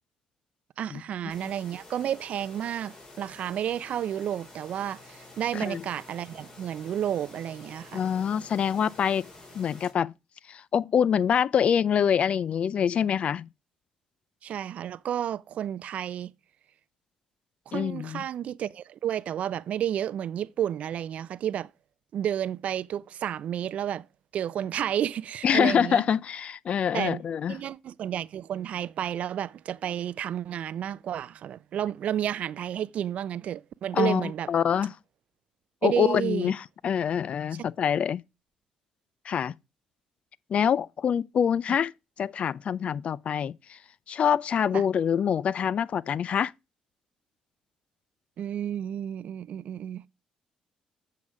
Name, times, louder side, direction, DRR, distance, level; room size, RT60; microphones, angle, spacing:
voice 1, 0.8-8.0 14.4-16.3 17.7-21.7 22.1-24.0 24.3-26.0 26.9-27.2 27.5-34.5 35.8-36.5 44.7-44.8 48.4-50.0, right 10 dB, 60° right, 0.4 m, -31 dB
sound 1, 1.3-9.9, left 2 dB, 35° left, 3.7 m, -49 dB
voice 2, 5.5-5.8 7.9-9.3 9.5-10.1 10.5-13.5 17.7-18.2 25.4-27.6 33.9-34.9 35.8-38.2 39.3-39.6 40.5-41.9 42.2-43.8 44.1-46.5, left 8 dB, 55° left, 0.4 m, -25 dB
8.0 x 5.7 x 4.8 m
supercardioid pair, 65°, 3 cm